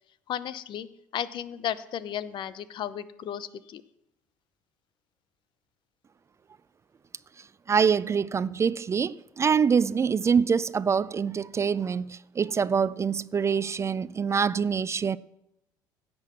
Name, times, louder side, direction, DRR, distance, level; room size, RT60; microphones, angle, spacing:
voice 1, 0.3-0.9 1.1-3.8, left 10 dB, 50° left, 0.7 m, -34 dB
voice 2, 7.7-15.2, right 6 dB, 25° right, 0.4 m, -25 dB
16.0 x 6.2 x 6.1 m
hypercardioid pair, 60°, 10 cm